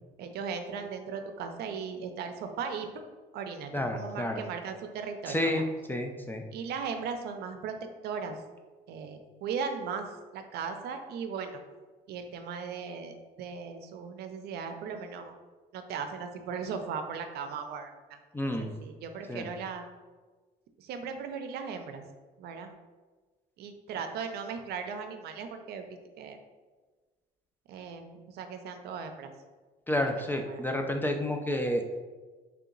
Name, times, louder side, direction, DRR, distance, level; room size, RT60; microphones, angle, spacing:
voice 1, 0.2-2.9 3.3-5.6 6.5-8.4 8.9-11.6 12.1-15.3 15.7-18.2 18.6-19.9 20.8-22.0 22.4-22.7 23.6-25.9 26.2-26.4 27.7-29.3 30.0-30.6, right 6 dB, 70° right, 6 dB, 0.5 m, -37 dB
voice 2, 3.7-4.4 5.3-5.6 5.9-6.4 18.3-18.7 19.3-19.5 29.9-31.8, left 1 dB, 10° left, 4 dB, 0.4 m, -30 dB
3.4 x 2.8 x 3.8 m, 1.3 s
cardioid pair, 110°, 17 cm